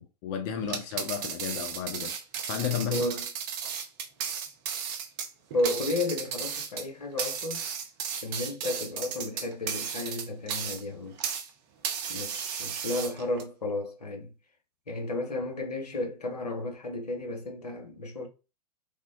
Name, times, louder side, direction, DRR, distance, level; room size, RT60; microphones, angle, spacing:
voice 1, 0.0-2.1 2.5-3.0, left 8 dB, 30° left, 0.4 m, -33 dB
sound 1, 0.6-11.5 11.8-13.4, right 7 dB, 35° right, 0.5 m, -35 dB
voice 2, 2.9-3.2 5.5-7.7 8.2-11.2 12.1-14.3 14.9-18.3, left 2 dB, 75° left, 0.9 m, -33 dB
3.3 x 2.1 x 2.4 m
figure-of-eight pair, 100°, 20 cm